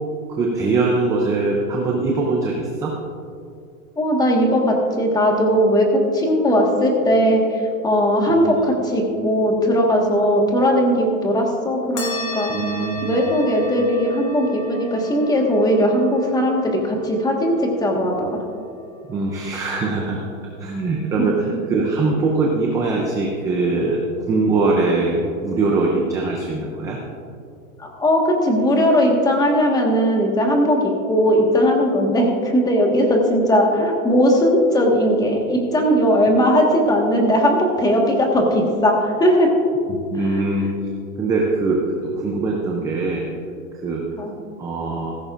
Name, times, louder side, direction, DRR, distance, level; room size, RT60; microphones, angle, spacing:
voice 1, 0.3-2.9 8.3-8.5 12.5-13.2 19.1-20.3 20.6-24.0 24.3-27.0 39.9-40.7 41.2-43.3 43.8-44.0 44.6-45.2, right 3 dB, 10° right, -1 dB, 0.4 m, -22 dB
voice 2, 4.0-12.5 13.0-18.3 27.8-30.8 31.0-39.5 40.2-40.4 44.2-44.3, equal, 10° left, 1 dB, 1.4 m, -18 dB
sound 1, 12.0-20.9, left 1 dB, 25° left, 2.1 m, -35 dB
16.0 x 14.0 x 2.5 m, 2.4 s
hypercardioid pair, 145°, 42 cm